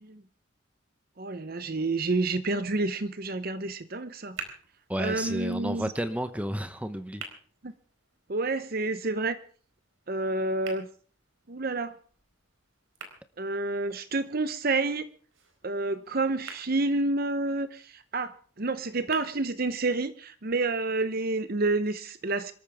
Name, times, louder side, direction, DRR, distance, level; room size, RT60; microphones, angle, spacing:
voice 1, 1.2-4.4 5.0-5.9 7.6-7.7 8.3-9.4 10.1-10.9 11.5-11.9 13.4-15.1 15.6-22.5, right 2 dB, 50° right, 12 dB, 0.9 m, -29 dB
sound 1, 3.9-19.9, right 5 dB, 80° right, 4.3 m, -50 dB
voice 2, 4.9-7.2, right 1 dB, 5° right, 10 dB, 0.9 m, -31 dB
26.5 x 13.5 x 3.6 m, 0.42 s
head